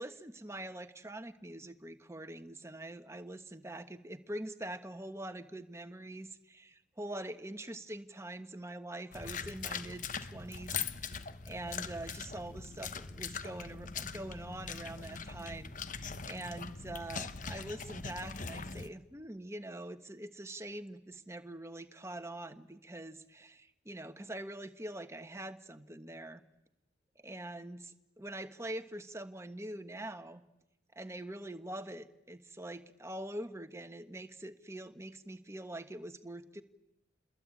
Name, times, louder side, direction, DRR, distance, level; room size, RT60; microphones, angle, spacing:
voice 1, 0.0-10.8 11.4-26.4 27.2-30.4 30.9-36.6, right 1 dB, 15° right, 9 dB, 1.2 m, -44 dB
sound 1, 9.1-18.9, left 6 dB, 40° left, 1.0 m, -41 dB
28.0 x 21.5 x 8.9 m, 0.87 s
head